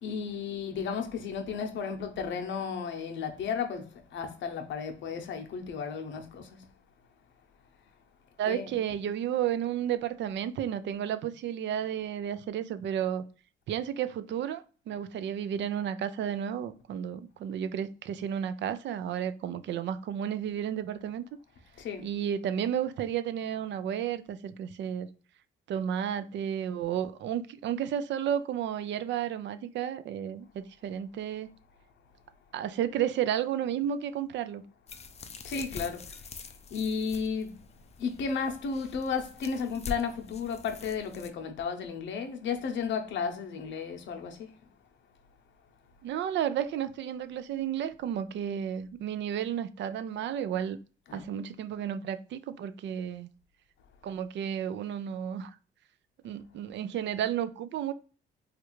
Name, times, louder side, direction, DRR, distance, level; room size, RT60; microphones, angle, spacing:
voice 1, 0.0-6.6 8.4-8.7 21.8-22.1 35.4-37.6 38.0-44.6 51.1-51.2, left 6 dB, 70° left, 0.7 m, -34 dB
voice 2, 8.4-13.2 13.7-21.2 22.0-25.1 25.7-31.5 32.5-34.6 46.0-50.8 51.1-53.3 54.0-55.6 56.2-57.9, right 9 dB, 65° right, 0.4 m, -32 dB
sound 1, 34.9-41.3, left 4 dB, 35° left, 0.4 m, -44 dB
3.2 x 2.4 x 3.0 m
cardioid pair, 90°, 20 cm